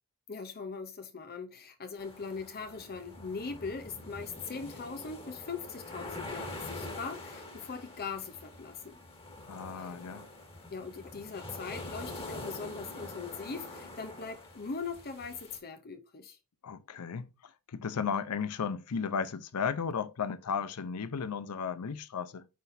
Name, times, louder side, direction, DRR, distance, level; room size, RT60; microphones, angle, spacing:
voice 1, 0.3-9.0 9.8-9.9 10.7-16.4, left 5 dB, 45° left, 0.7 m, -41 dB
sound 1, 2.0-15.6, left 2 dB, 25° left, 1.8 m, -45 dB
voice 2, 9.5-10.3 16.6-22.5, left 6 dB, 90° left, 0.6 m, -35 dB
9.4 x 4.0 x 2.6 m
head